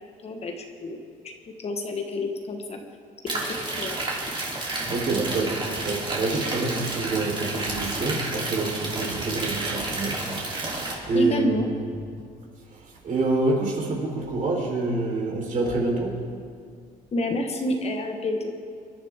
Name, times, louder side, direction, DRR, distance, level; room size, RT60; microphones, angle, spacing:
voice 1, 0.2-1.0 1.2-1.3 1.6-2.8 3.3-4.0 11.1-11.7 17.1-18.5, left 1 dB, 40° left, 4 dB, 1.4 m, -28 dB
sound 1, 3.3-10.9, right 2 dB, 30° right, 3.2 m, -31 dB
voice 2, 4.9-10.8 11.0-11.7 12.7-16.2, right 3 dB, 50° right, -1 dB, 3.9 m, -27 dB
25.0 x 11.5 x 3.6 m, 2.2 s
cardioid pair, 110°, 17 cm